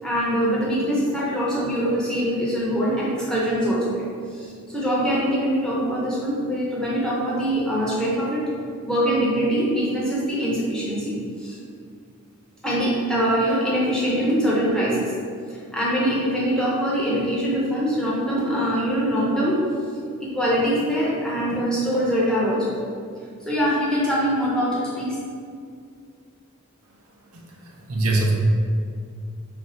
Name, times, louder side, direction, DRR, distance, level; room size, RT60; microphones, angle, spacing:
voice 1, 0.0-8.4 8.8-11.6 12.6-15.1 15.5-19.6 20.2-22.8 23.4-25.2, equal, 5° left, -7 dB, 0.6 m, -23 dB
voice 2, 27.3-28.3, right 2 dB, 85° right, -1 dB, 0.6 m, -24 dB
3.4 x 2.5 x 4.2 m, 2.3 s
head